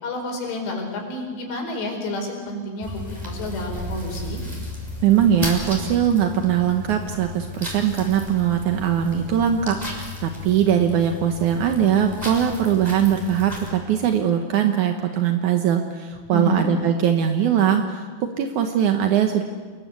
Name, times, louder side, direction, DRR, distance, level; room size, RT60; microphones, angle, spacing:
voice 1, 0.0-4.4 16.3-16.7, left 1 dB, 70° left, 2 dB, 6.9 m, -29 dB
sound 1, 2.8-13.7, left 2 dB, 10° right, 5.8 m, -34 dB
voice 2, 5.0-18.1 18.4-19.4, right 9 dB, 75° right, 5 dB, 1.8 m, -21 dB
28.5 x 21.0 x 8.3 m, 1.5 s
omnidirectional pair, 5.2 m